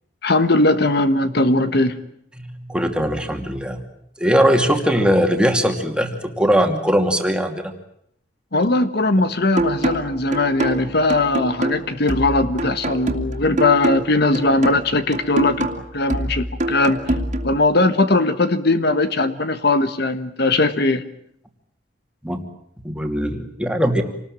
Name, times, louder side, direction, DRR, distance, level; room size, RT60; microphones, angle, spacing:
voice 1, 0.2-2.0 8.5-15.7 15.9-17.0 17.4-21.0, left 2 dB, 55° left, 11 dB, 1.4 m, -19 dB
voice 2, 2.4-3.8 4.2-7.7 22.2-22.4 22.8-24.0, equal, 5° right, 5 dB, 2.6 m, -20 dB
sound 1, 9.6-17.6, right 1 dB, 40° right, 2.6 m, -25 dB
27.5 x 19.5 x 8.9 m, 0.72 s
head